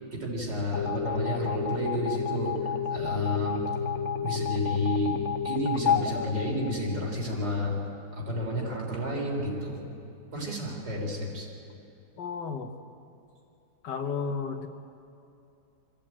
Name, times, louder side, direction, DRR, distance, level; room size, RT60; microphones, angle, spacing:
voice 1, 0.1-3.7 4.2-7.8 8.1-9.8 10.3-11.5, equal, 90° right, -2 dB, 4.9 m, -31 dB
sound 1, 0.7-7.2, left 7 dB, 45° left, 1.2 m, -30 dB
voice 2, 12.2-12.7 13.8-14.7, left 5 dB, 75° left, 6 dB, 1.9 m, -33 dB
23.0 x 15.5 x 8.9 m, 2.7 s
omnidirectional pair, 1.9 m